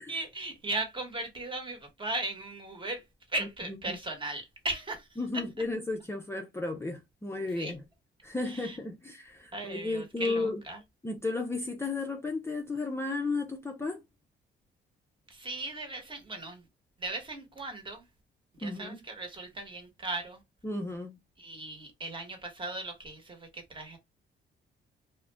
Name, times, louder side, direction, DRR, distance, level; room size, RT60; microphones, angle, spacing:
voice 1, 0.0-5.4 7.5-7.7 8.5-8.8 9.5-10.8 15.3-16.6 17.0-18.1 18.6-20.4 21.4-24.0, right 2 dB, 25° right, 1.1 m, -37 dB
voice 2, 5.2-7.8 8.2-10.6 11.0-14.0 18.6-19.0 20.6-21.2, left 3 dB, 15° left, 0.5 m, -33 dB
2.4 x 2.1 x 3.2 m
cardioid pair, 90°, 20 cm